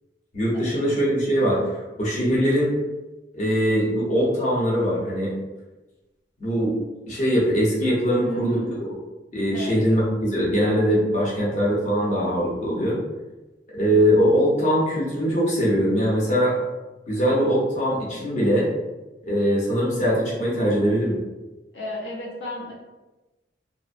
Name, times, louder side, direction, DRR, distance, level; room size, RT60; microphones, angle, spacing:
voice 1, 0.3-1.6 2.0-2.7 3.3-5.3 6.4-6.8 7.1-8.9 9.3-13.0 13.7-16.6 17.1-18.7 19.2-21.2, equal, 40° left, -6 dB, 0.7 m, -22 dB
voice 2, 8.2-8.7 9.5-9.9 21.7-22.7, left 1 dB, 75° left, -4 dB, 0.5 m, -34 dB
2.6 x 2.0 x 2.4 m, 1.1 s
head